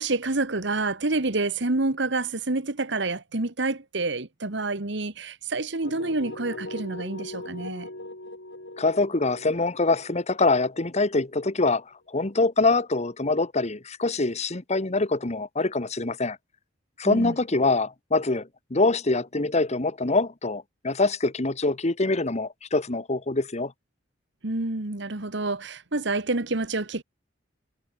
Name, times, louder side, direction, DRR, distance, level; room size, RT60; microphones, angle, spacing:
voice 1, 0.0-7.9 17.0-17.3 24.4-27.0, right 2 dB, 70° right, 1.6 m, -28 dB
sound 1, 5.8-11.7, left 1 dB, 75° left, 7.5 m, -41 dB
voice 2, 8.8-16.4 17.0-23.7, left 3 dB, 35° left, 1.4 m, -24 dB
head